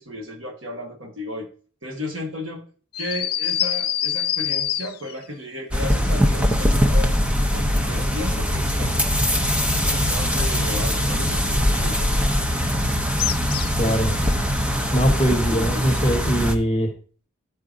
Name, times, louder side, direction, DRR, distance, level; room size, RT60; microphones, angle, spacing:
voice 1, 0.0-1.5 1.8-2.6 3.0-7.1 7.5-8.9 9.8-12.3 15.5-15.9, left 1 dB, 75° right, 1 dB, 1.4 m, -34 dB
sound 1, 2.9-5.2 13.2-13.9, left 11 dB, 45° left, 0.4 m, -25 dB
sound 2, 5.7-16.6, equal, 5° right, 0.5 m, -21 dB
voice 2, 13.8-14.2 14.9-16.9, equal, 25° left, 3 dB, 0.9 m, -21 dB
13.5 x 4.8 x 2.5 m, 0.40 s
head